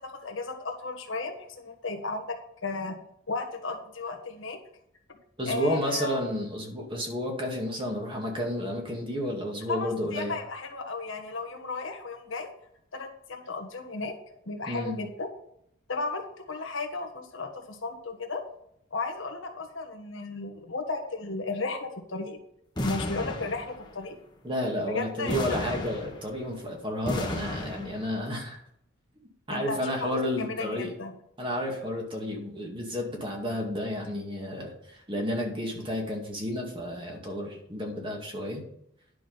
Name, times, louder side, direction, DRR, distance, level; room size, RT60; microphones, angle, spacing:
voice 1, 0.0-3.0 3.3-4.6 5.5-6.3 9.7-12.5 12.9-14.2 14.4-15.3 15.9-18.5 18.9-22.4 22.8-24.1 24.9-25.4 29.5-31.1, left 3 dB, 65° left, 3 dB, 1.4 m, -34 dB
voice 2, 5.4-10.3 14.7-14.9 24.4-28.6 29.5-30.9 31.4-38.6, left 1 dB, 25° right, 0 dB, 2.1 m, -31 dB
sound 1, 22.8-24.0 25.3-26.5 27.1-28.2, left 1 dB, 20° left, 1.2 m, -34 dB
11.0 x 6.1 x 5.3 m, 0.73 s
head